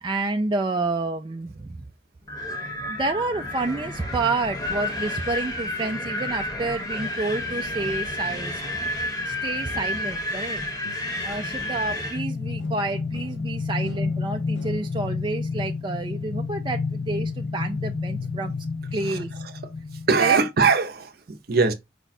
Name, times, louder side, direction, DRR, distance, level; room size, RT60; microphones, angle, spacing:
voice 1, 0.0-1.7 2.8-8.6 9.3-10.7 11.2-18.5 18.9-19.3 20.2-20.4, right 3 dB, 25° right, 0.3 m, -29 dB
Wind, 2.3-12.2, left 1 dB, 20° left, 1.3 m, -30 dB
sound 1, 10.8-12.3 12.6-15.2, equal, 75° left, 0.9 m, -47 dB
sound 2, 12.1-20.3, left 4 dB, 50° left, 0.6 m, -30 dB
voice 2, 19.0-19.6 20.1-21.7, right 4 dB, 55° right, 0.7 m, -22 dB
5.0 x 2.3 x 4.0 m
head